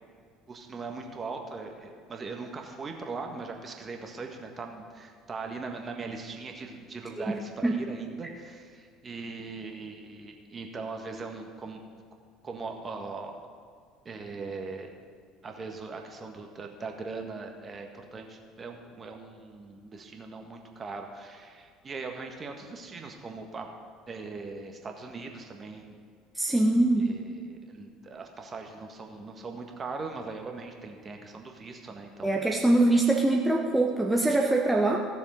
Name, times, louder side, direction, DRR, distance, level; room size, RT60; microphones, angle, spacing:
voice 1, 0.5-11.8 12.4-13.4 14.0-14.9 15.4-23.7 24.1-26.0 27.0-32.4, right 4 dB, 30° right, 3 dB, 1.7 m, -40 dB
voice 2, 7.2-7.8 26.3-27.1 32.2-35.0, right 2 dB, 5° right, 0 dB, 1.1 m, -23 dB
16.0 x 7.2 x 5.3 m, 2.1 s
figure-of-eight pair, 60°, 0 cm